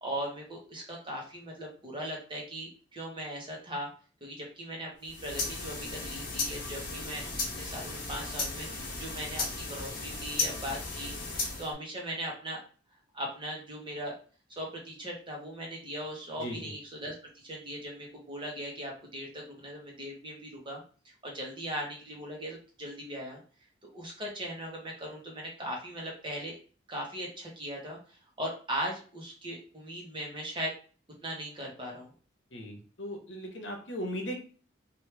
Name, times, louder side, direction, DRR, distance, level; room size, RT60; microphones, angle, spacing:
voice 1, 0.0-3.9 4.2-7.2 7.6-12.6 13.1-14.2 14.6-20.8 21.2-23.4 23.8-26.6 26.9-30.7 31.2-32.1, equal, 25° right, -1 dB, 1.0 m, -39 dB
sound 1, 5.0-11.7, left 3 dB, 55° left, 1.2 m, -35 dB
voice 2, 16.4-16.7 32.5-34.4, equal, 75° left, 2 dB, 1.0 m, -37 dB
3.1 x 2.6 x 3.2 m, 0.38 s
head